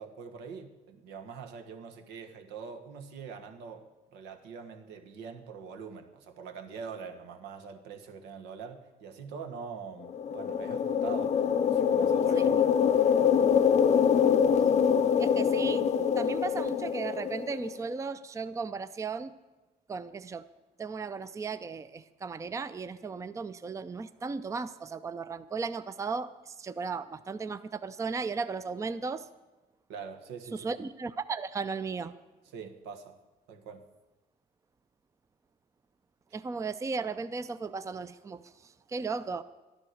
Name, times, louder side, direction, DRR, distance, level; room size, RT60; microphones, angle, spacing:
voice 1, 0.0-12.7 12.9-13.3 29.9-30.7 32.5-33.1 33.5-33.8, right 6 dB, 90° right, 5 dB, 1.4 m, -44 dB
sound 1, 10.0-17.7, left 7 dB, 40° left, 0.6 m, -25 dB
voice 2, 15.2-15.9 16.2-19.3 19.9-20.4 20.8-29.2 30.5-32.1 36.3-38.4 38.9-39.4, right 4 dB, 20° right, 13 dB, 0.5 m, -35 dB
12.0 x 10.5 x 6.4 m, 1.1 s
cardioid pair, 110°, 17 cm